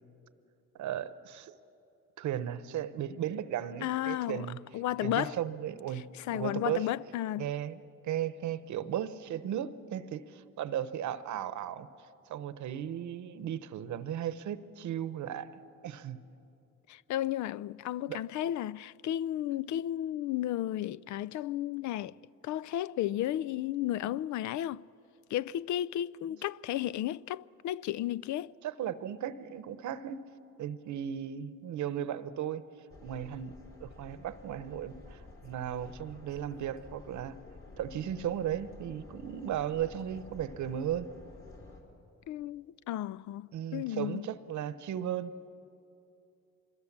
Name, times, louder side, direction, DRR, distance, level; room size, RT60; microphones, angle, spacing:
voice 1, 0.7-1.5 2.2-4.6 5.0-6.0 6.3-6.9 7.4-11.9 12.3-16.2 18.1-18.2 28.6-30.2 30.6-32.6 33.0-33.5 33.8-37.4 37.8-41.1 43.5-45.3, right 10 dB, 70° right, 1.0 m, -36 dB
voice 2, 3.8-4.5 4.7-5.4 6.2-7.5 16.9-22.2 22.4-24.8 25.3-28.5 42.3-44.3, left 13 dB, 70° left, 0.5 m, -33 dB
sound 1, 32.9-41.8, left 3 dB, 45° left, 4.4 m, -51 dB
25.0 x 21.5 x 7.4 m
cardioid pair, 90°, 30 cm